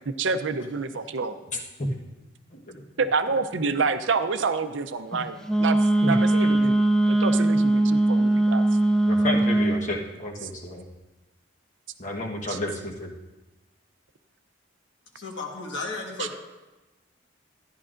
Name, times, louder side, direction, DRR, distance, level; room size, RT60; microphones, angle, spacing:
voice 1, 0.1-1.4 3.0-6.7 7.1-8.6 12.5-12.6 16.2-16.3, right 4 dB, 70° right, 10 dB, 0.6 m, -28 dB
voice 2, 1.5-1.9 2.5-2.8 5.1-5.2 6.0-6.2 9.1-10.8 12.0-13.1, left 1 dB, 40° left, 0 dB, 1.2 m, -31 dB
Wind instrument woodwind instrument, 5.5-9.9, right 1 dB, 5° left, 0.4 m, -21 dB
voice 3, 15.1-16.4, left 3 dB, 65° left, 1 dB, 1.5 m, -34 dB
13.5 x 11.0 x 2.5 m, 1.1 s
head